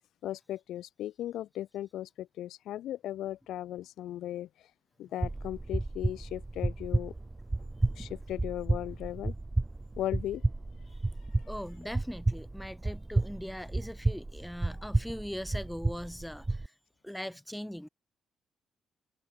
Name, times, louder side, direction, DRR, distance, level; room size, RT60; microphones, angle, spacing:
voice 1, 0.2-4.5 5.0-7.1 8.0-9.3 10.0-10.4, left 13 dB, 80° left, 4.6 m, -37 dB
sound 1, 5.2-16.7, right 2 dB, 15° right, 2.5 m, -32 dB
voice 2, 11.5-16.7 17.0-17.9, equal, 5° left, 2.1 m, -40 dB
cardioid pair, 90°, 0 cm